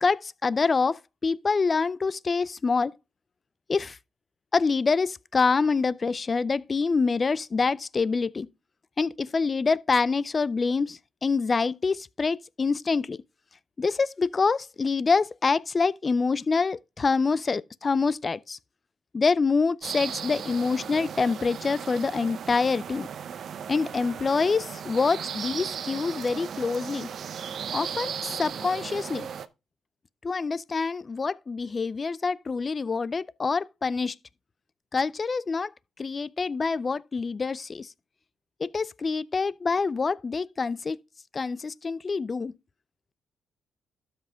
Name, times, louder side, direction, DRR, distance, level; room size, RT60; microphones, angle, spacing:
voice 1, 0.0-2.9 3.7-4.0 4.5-8.5 9.0-13.2 13.8-18.6 19.1-23.1 23.7-27.1 27.7-29.3 30.2-34.2 34.9-35.7 36.0-37.9 38.6-41.0 41.3-42.5, left 4 dB, 35° left, 0.4 m, -26 dB
sound 1, 19.8-29.5, right 7 dB, 60° right, 0.7 m, -36 dB
12.5 x 5.6 x 3.6 m
cardioid pair, 90°, 0 cm